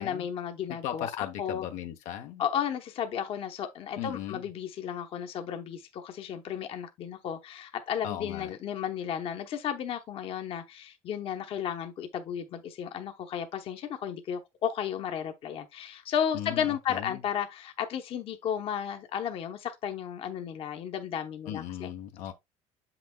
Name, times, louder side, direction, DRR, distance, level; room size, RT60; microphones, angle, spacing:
voice 1, 0.0-1.7 2.4-21.9, left 9 dB, 50° left, 0.9 m, -33 dB
voice 2, 0.7-2.4 4.0-4.4 8.0-8.6 16.3-17.2 21.5-22.3, left 11 dB, 80° left, 0.9 m, -37 dB
7.5 x 6.0 x 2.2 m
cardioid pair, 135°, 12 cm